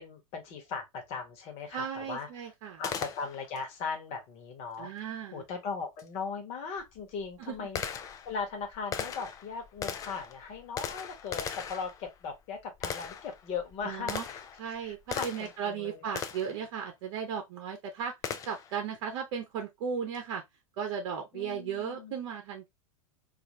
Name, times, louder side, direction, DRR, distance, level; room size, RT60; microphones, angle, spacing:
voice 1, 0.0-2.3 2.8-4.9 5.3-7.8 8.2-14.4 14.7-16.1 21.3-22.2, left 5 dB, 35° left, 1.2 m, -38 dB
voice 2, 1.7-2.8 4.8-5.4 7.4-7.7 13.8-14.2 14.6-18.1 18.4-20.4 20.8-22.7, right 7 dB, 45° right, 0.8 m, -36 dB
Gunshot gunfire, 2.8-3.6 6.0-6.1 6.8-15.7 16.2-16.6 18.2-18.8, left 7 dB, 20° left, 0.4 m, -39 dB
3.3 x 2.6 x 2.8 m
figure-of-eight pair, 90°, 18 cm